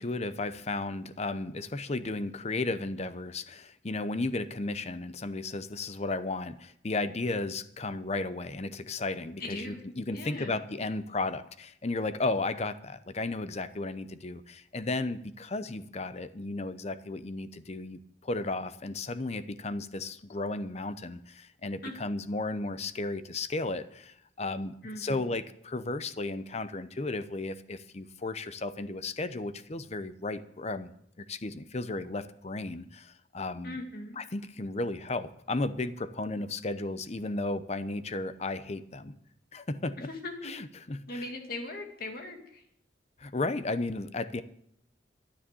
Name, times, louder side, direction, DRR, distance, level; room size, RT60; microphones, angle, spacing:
voice 1, 0.0-30.9 31.2-33.7 34.2-39.2 39.5-40.1 40.4-41.3 43.2-44.4, left 2 dB, 35° left, 13 dB, 0.7 m, -34 dB
voice 2, 9.4-9.8 10.1-10.6 21.8-22.0 24.8-25.4 33.6-34.2 40.0-40.5 41.1-42.6, left 2 dB, 50° left, 3 dB, 2.4 m, -39 dB
12.5 x 10.0 x 6.9 m, 0.71 s
head